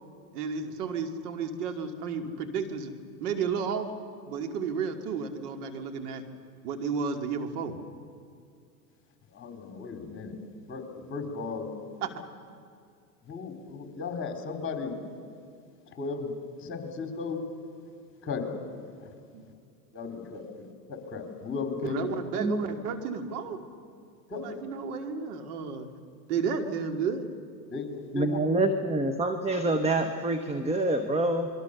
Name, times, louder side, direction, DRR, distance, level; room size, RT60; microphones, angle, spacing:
voice 1, 0.3-2.9 3.2-3.9 4.3-6.2 6.6-7.8 12.0-12.1 19.3-19.4 21.8-23.6 24.3-25.9 26.3-27.3, right 6 dB, 70° right, 5 dB, 2.5 m, -32 dB
voice 2, 9.3-10.4 10.7-10.8 11.1-11.7 13.2-15.0 16.0-16.3 16.6-17.4 18.2-18.5 19.9-22.0 24.3-24.4 27.7-28.4, left 5 dB, 25° left, 4 dB, 4.3 m, -35 dB
voice 3, 22.4-22.7 28.1-31.5, right 2 dB, 15° right, 7 dB, 1.2 m, -26 dB
27.5 x 22.5 x 6.9 m, 2.3 s
hypercardioid pair, 105°, 48 cm